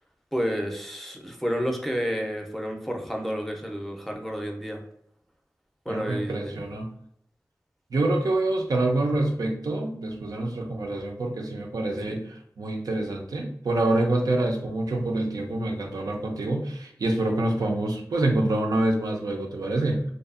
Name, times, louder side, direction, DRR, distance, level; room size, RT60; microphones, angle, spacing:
voice 1, 0.3-4.8 5.9-6.7 12.1-12.2, equal, 5° left, 1 dB, 0.5 m, -30 dB
voice 2, 5.9-6.9 7.9-20.0, right 2 dB, 85° right, 1 dB, 0.4 m, -26 dB
2.6 x 2.3 x 2.4 m, 0.72 s
wide cardioid pair, 55°, 6 cm